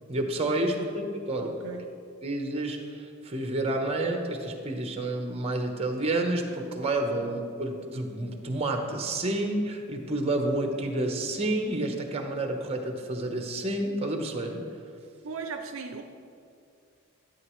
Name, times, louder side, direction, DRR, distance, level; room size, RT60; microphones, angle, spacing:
voice 1, 0.1-1.6 2.2-14.7, right 2 dB, 30° right, 4 dB, 0.9 m, -29 dB
voice 2, 0.6-1.0 1.4-1.9 15.2-16.0, right 5 dB, 65° right, 5 dB, 0.5 m, -38 dB
13.0 x 8.3 x 3.1 m, 2.4 s
head